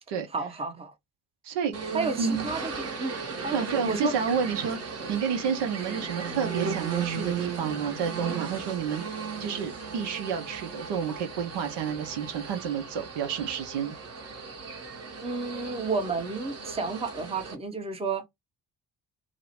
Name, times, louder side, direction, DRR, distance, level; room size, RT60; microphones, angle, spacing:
voice 1, 0.3-0.9 1.9-4.1 15.2-18.3, right 4 dB, 15° right, 0.8 m, -31 dB
voice 2, 1.4-1.8 2.2-2.5 3.5-9.0 9.4-13.9, right 7 dB, 60° right, 0.9 m, -30 dB
sound 1, 1.7-17.5, right 6 dB, 35° right, 1.1 m, -36 dB
2.8 x 2.1 x 2.9 m
figure-of-eight pair, 40°, 47 cm